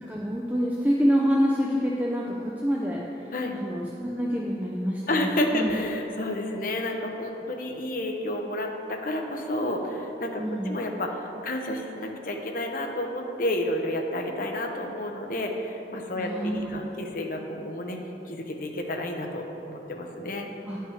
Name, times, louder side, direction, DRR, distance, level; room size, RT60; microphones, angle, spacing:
voice 1, 0.0-5.7 10.4-10.8 16.2-17.0 20.7-20.8, equal, 10° right, -4 dB, 0.5 m, -27 dB
voice 2, 5.1-18.0 18.3-20.5, left 1 dB, 50° left, 2 dB, 0.8 m, -30 dB
9.8 x 5.6 x 4.9 m, 3.0 s
head